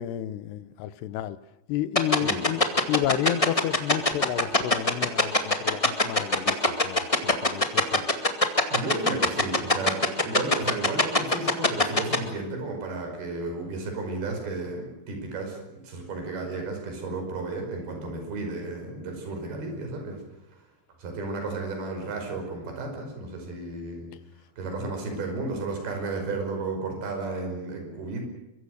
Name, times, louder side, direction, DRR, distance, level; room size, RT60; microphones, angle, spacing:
voice 1, 0.0-1.4 1.7-2.6 2.9-6.6 6.8-8.1 24.8-24.9, left 12 dB, 80° left, 15 dB, 3.1 m, -31 dB
sound 1, 1.9-12.2, left 2 dB, 25° left, 0.7 m, -20 dB
voice 2, 8.7-20.2 21.0-24.1 24.6-28.3, right 3 dB, 65° right, 3 dB, 7.2 m, -33 dB
23.5 x 23.5 x 6.6 m, 0.99 s
omnidirectional pair, 4.8 m